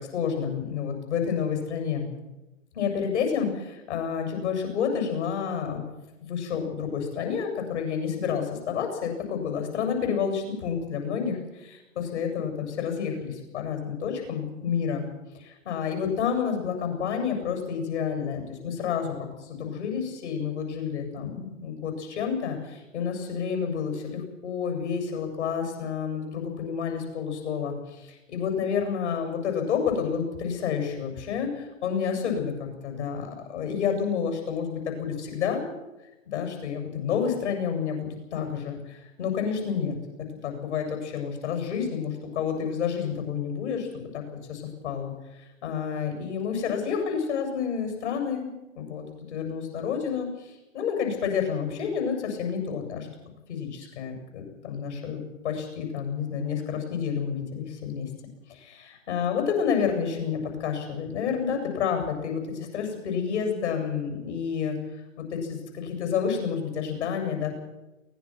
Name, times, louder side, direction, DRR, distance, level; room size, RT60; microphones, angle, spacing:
voice 1, 0.1-2.1 2.7-5.9 6.2-15.1 15.3-35.6 36.3-38.0 38.3-40.0 40.4-43.9 44.1-44.2 44.5-45.1 45.4-48.5 48.7-53.1 53.5-58.1 58.5-64.8 65.2-67.5, left 7 dB, 55° left, 4 dB, 7.7 m, -29 dB
23.5 x 19.0 x 6.2 m, 1.0 s
figure-of-eight pair, 120°, 40 cm